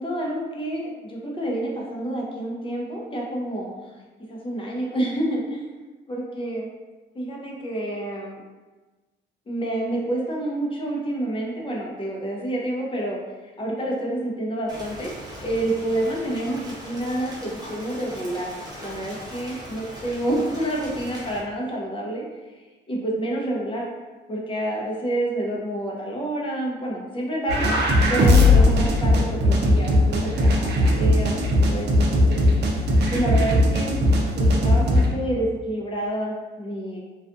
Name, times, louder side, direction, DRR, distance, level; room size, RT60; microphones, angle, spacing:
voice 1, 0.0-5.7 6.1-6.7 7.1-8.4 9.5-15.1 15.4-22.2 22.5-23.9 24.3-27.7 28.1-32.7 33.1-34.0 34.3-37.0, right 1 dB, 25° left, -2 dB, 0.6 m, -28 dB
Rain, 14.7-21.4, equal, 20° right, 0.7 m, -40 dB
sound 1, 27.5-35.1, left 1 dB, 60° right, 0.5 m, -19 dB
2.4 x 2.3 x 2.4 m, 1.2 s
cardioid pair, 90°, 20 cm